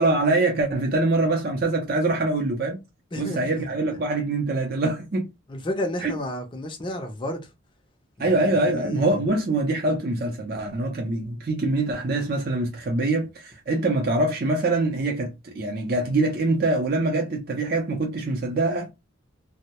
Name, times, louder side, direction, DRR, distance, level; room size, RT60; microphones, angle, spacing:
voice 1, 0.0-2.8 3.2-5.3 6.0-6.1 8.2-18.9, right 2 dB, 45° right, 0.5 m, -24 dB
voice 2, 3.1-3.7 5.5-7.5 8.2-9.2, left 1 dB, 25° left, 0.5 m, -32 dB
2.2 x 2.0 x 2.8 m
head